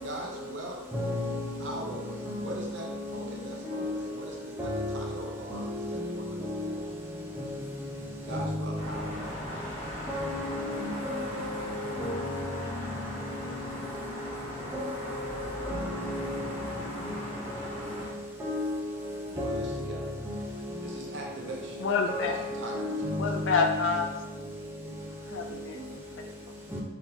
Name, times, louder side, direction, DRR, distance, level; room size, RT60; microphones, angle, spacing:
voice 1, 0.0-0.8 1.6-6.8 8.2-9.4 19.2-20.1 20.8-21.9 22.2-22.8, right 2 dB, 60° right, 0.7 m, -41 dB
voice 2, 0.9-1.4 2.3-3.2 3.6-3.9 4.6-5.0 5.5-6.7 7.4-7.5 8.3-8.5 10.1-11.5 11.8-12.6 14.7-14.8 15.7-16.4 17.0-17.1 18.4-18.7 19.4-20.4 22.1-23.7 26.7-26.8, left 1 dB, 10° right, 0.7 m, -33 dB
sound 1, 8.7-18.1, equal, 30° left, 1.4 m, -39 dB
voice 3, 21.8-22.4 23.2-24.1 25.3-26.5, left 5 dB, 65° left, 0.4 m, -29 dB
3.8 x 2.9 x 2.7 m
head